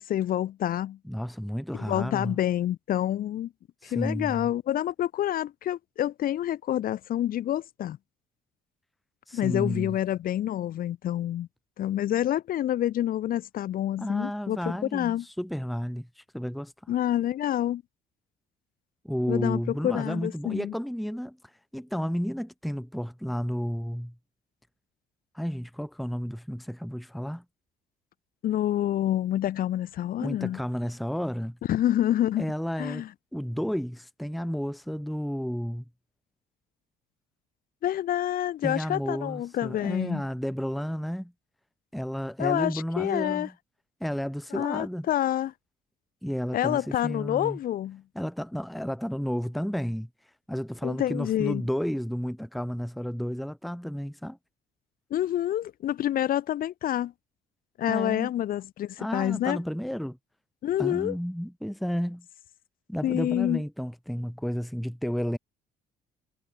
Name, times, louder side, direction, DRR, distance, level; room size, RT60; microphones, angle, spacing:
voice 1, 0.0-1.0 1.7-3.5 3.8-8.0 9.3-11.5 11.8-15.2 16.9-17.8 19.3-20.7 28.4-30.6 31.7-32.5 32.8-33.1 37.8-40.2 42.4-43.5 44.5-45.5 46.5-48.0 50.8-51.6 55.1-57.1 57.8-59.6 60.6-61.2 63.0-63.6, left 12 dB, 60° left, 1.2 m, -28 dB
voice 2, 1.0-2.4 3.8-4.5 9.3-10.0 14.0-16.7 19.0-21.4 21.7-24.1 25.3-27.4 30.2-31.6 32.4-33.0 33.3-35.8 38.6-41.3 41.9-43.5 44.0-45.1 46.2-47.6 48.1-50.1 50.5-54.4 57.9-58.3 59.0-60.2 60.8-62.3 62.9-65.4, equal, ahead, 0.8 m, -32 dB
cardioid pair, 110°, 17 cm